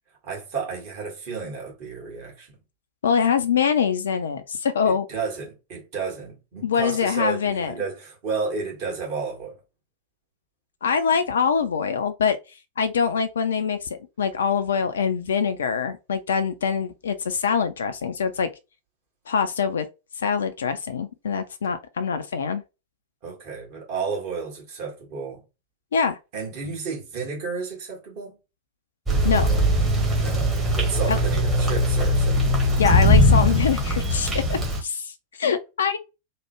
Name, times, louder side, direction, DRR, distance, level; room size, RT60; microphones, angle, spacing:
voice 1, 0.2-2.6 4.8-9.6 23.2-25.4 26.3-28.4 30.1-32.6, right 5 dB, 45° right, 1.5 m, -32 dB
voice 2, 3.0-5.1 6.6-7.7 10.8-12.4 12.8-18.5 19.3-19.9 20.2-22.6 25.9-26.2 29.2-29.5 31.1-31.2 32.8-36.0, left 6 dB, 65° left, 0.3 m, -24 dB
sound 1, 29.1-34.8, left 1 dB, 15° right, 1.1 m, -20 dB
3.2 x 2.1 x 3.1 m
figure-of-eight pair, 90°, 0 cm